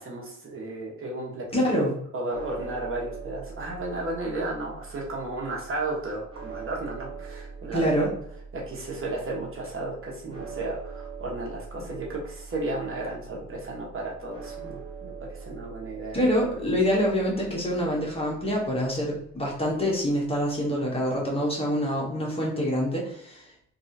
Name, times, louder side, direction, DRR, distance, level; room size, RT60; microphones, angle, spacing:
voice 1, 0.0-1.9 2.1-8.1 8.5-16.2, right 2 dB, 45° right, -2 dB, 1.1 m, -34 dB
voice 2, 1.5-1.9 7.7-8.1 16.1-23.5, equal, 20° left, -3 dB, 1.2 m, -26 dB
sound 1, 2.3-20.6, right 5 dB, 15° right, 1.2 m, -43 dB
3.2 x 2.7 x 2.7 m, 0.69 s
cardioid pair, 90°, 30 cm